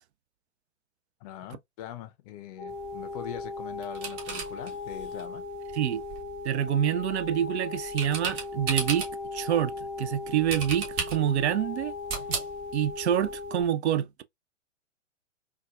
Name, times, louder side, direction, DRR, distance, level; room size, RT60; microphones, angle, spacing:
voice 1, 1.2-5.4, left 11 dB, 30° left, 0.5 m, -42 dB
sound 1, 2.6-13.6, left 3 dB, 5° right, 1.0 m, -38 dB
sound 2, 2.7-13.7, right 5 dB, 35° right, 1.4 m, -38 dB
voice 2, 6.4-11.9 12.7-14.2, right 10 dB, 65° right, 0.5 m, -27 dB
4.0 x 2.3 x 2.3 m
hypercardioid pair, 115°, 36 cm